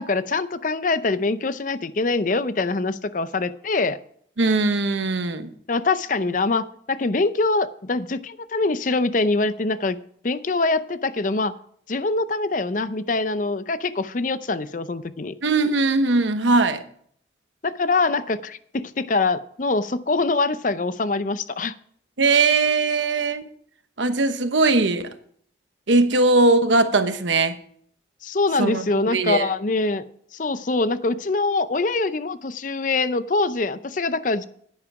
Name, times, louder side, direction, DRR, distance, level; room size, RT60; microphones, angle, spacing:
voice 1, 0.0-4.0 5.7-10.0 10.2-11.5 11.9-15.3 17.6-21.7 28.2-30.0 30.3-34.5, left 3 dB, 45° left, 14 dB, 0.6 m, -24 dB
voice 2, 4.4-5.5 15.4-16.8 22.2-23.4 24.0-25.1 25.9-27.6 28.6-29.4, right 3 dB, 90° right, 9 dB, 1.1 m, -20 dB
10.5 x 9.8 x 4.8 m, 0.62 s
head